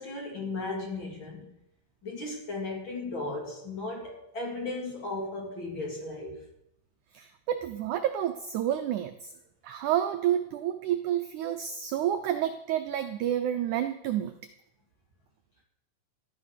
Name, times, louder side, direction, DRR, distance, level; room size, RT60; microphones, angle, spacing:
voice 1, 0.0-1.5 2.0-6.4, left 2 dB, 35° left, -1 dB, 3.7 m, -36 dB
voice 2, 7.1-9.3 9.6-14.4, right 11 dB, 80° right, 8 dB, 1.7 m, -29 dB
13.5 x 10.5 x 6.6 m, 0.82 s
omnidirectional pair, 4.4 m